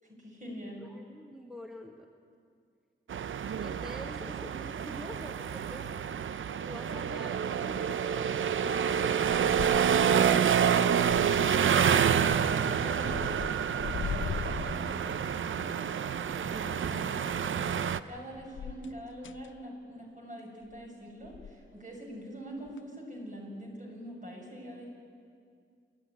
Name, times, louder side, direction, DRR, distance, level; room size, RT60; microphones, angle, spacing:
voice 1, 0.0-0.9 12.0-13.5 13.8-15.9 16.3-17.7 18.0-24.9, equal, 40° right, -1 dB, 6.3 m, -44 dB
voice 2, 0.8-2.1 3.6-6.0 6.6-11.6 17.0-17.1, equal, ahead, 2 dB, 1.4 m, -46 dB
sound 1, 3.1-18.0, right 8 dB, 75° right, 0.6 m, -28 dB
sound 2, 9.3-10.2 10.5-11.5 12.1-12.6 13.0-15.4 18.4-19.5 20.6-20.9 21.2-21.6 22.7-22.8, left 7 dB, 75° left, 0.6 m, -40 dB
28.5 x 12.0 x 9.8 m, 2.3 s
wide cardioid pair, 90°, 20 cm